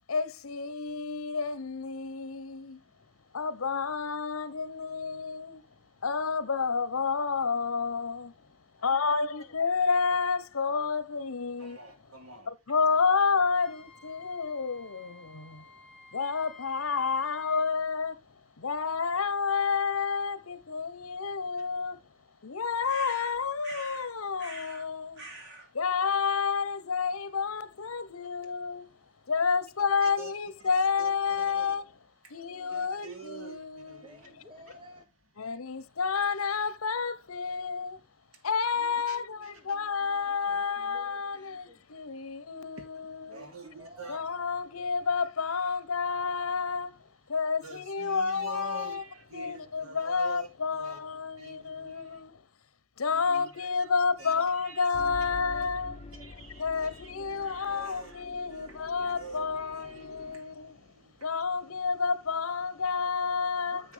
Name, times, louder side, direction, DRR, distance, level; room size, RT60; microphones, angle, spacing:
voice 1, 0.1-2.8 3.3-5.6 6.0-8.3 8.8-11.8 12.5-15.7 16.1-18.2 18.6-22.0 22.4-25.2 25.7-28.9 29.3-31.9 32.3-34.0 35.4-38.0 38.4-43.5 44.1-47.0 47.3-49.0 49.3-52.3 53.0-56.0 56.6-60.8 61.2-63.8, left 5 dB, 80° left, 0.9 m, -30 dB
voice 2, 11.6-12.5 30.0-30.3 31.0-31.1 31.4-31.7 32.2-32.3 32.7-34.2 39.1-39.2 43.3-44.2 47.6-50.5 50.7-51.0 51.4-52.2 53.1-53.9 54.2-54.9 56.2-61.3, right 3 dB, 75° right, 2.9 m, -47 dB
Wind instrument woodwind instrument, 13.6-17.7, left 4 dB, 5° left, 1.8 m, -53 dB
sound 1, 22.9-24.1 24.4-24.9 25.2-25.7, right 2 dB, 55° right, 3.9 m, -44 dB
voice 3, 32.3-33.0 34.0-35.1 38.8-41.8 43.3-44.2 55.3-56.5 63.6-63.9, equal, 25° right, 1.4 m, -54 dB
sound 2, 54.9-60.4, left 3 dB, 30° left, 0.5 m, -47 dB
9.8 x 7.0 x 3.4 m
head